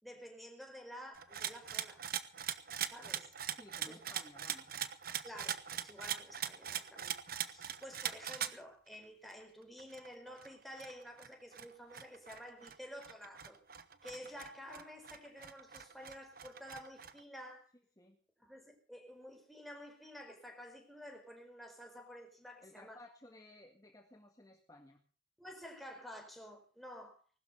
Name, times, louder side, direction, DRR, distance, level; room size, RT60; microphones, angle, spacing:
voice 1, 0.0-2.0 2.9-3.3 3.9-4.0 5.2-7.2 7.4-13.6 14.0-17.7 18.4-23.0 25.4-27.2, equal, ahead, 3 dB, 4.5 m, -51 dB
sound 1, 1.1-8.6 8.9-9.0 9.3-9.4 9.8-17.2, right 9 dB, 50° right, 1.2 m, -42 dB
voice 2, 3.5-4.7 14.1-14.3 18.0-18.2 22.6-25.0, left 1 dB, 20° left, 4 dB, 1.8 m, -57 dB
20.0 x 12.5 x 5.6 m, 0.40 s
head